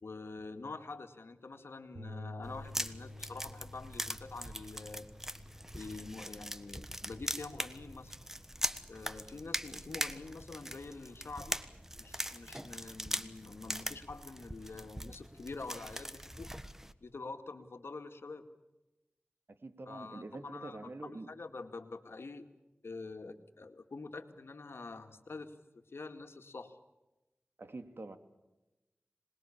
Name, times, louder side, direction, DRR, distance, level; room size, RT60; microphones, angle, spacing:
voice 1, 0.0-5.1 5.7-8.1 8.9-11.6 12.0-16.5 17.0-18.5 19.9-22.5 22.8-26.8, left 3 dB, 80° left, 7 dB, 2.1 m, -46 dB
Bass guitar, 1.9-8.2, left 2 dB, 85° right, 4.5 m, -51 dB
sound 1, 2.4-16.9, equal, 10° right, 1.4 m, -41 dB
voice 2, 19.6-21.3 27.6-28.2, right 2 dB, 70° right, 8 dB, 2.4 m, -45 dB
26.5 x 21.0 x 7.3 m, 1.0 s
wide cardioid pair, 50°, 4 cm